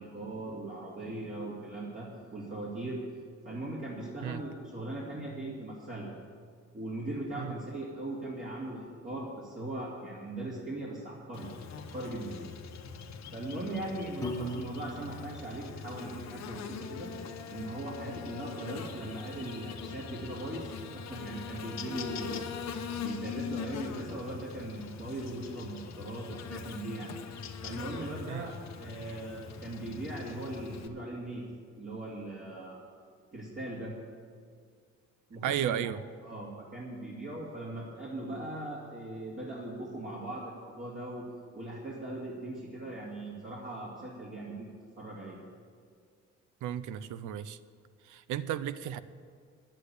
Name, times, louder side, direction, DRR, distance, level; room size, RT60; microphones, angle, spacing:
voice 1, 0.0-3.0 3.4-6.1 6.7-11.5 11.8-12.4 13.3-17.1 17.5-27.1 27.6-31.4 31.8-32.8 33.3-33.9 35.3-35.7 36.2-41.3 41.5-44.7 45.0-45.4, right 1 dB, 40° right, -5 dB, 2.6 m, -39 dB
Buzz, 11.3-30.9, left 6 dB, 60° left, 1.0 m, -42 dB
Piano, 14.2-16.4, equal, 10° left, 1.5 m, -40 dB
voice 2, 35.4-36.0 46.6-47.6 48.0-49.0, right 10 dB, 85° right, 15 dB, 0.6 m, -34 dB
10.0 x 8.3 x 8.3 m, 2.1 s
cardioid pair, 90°, 30 cm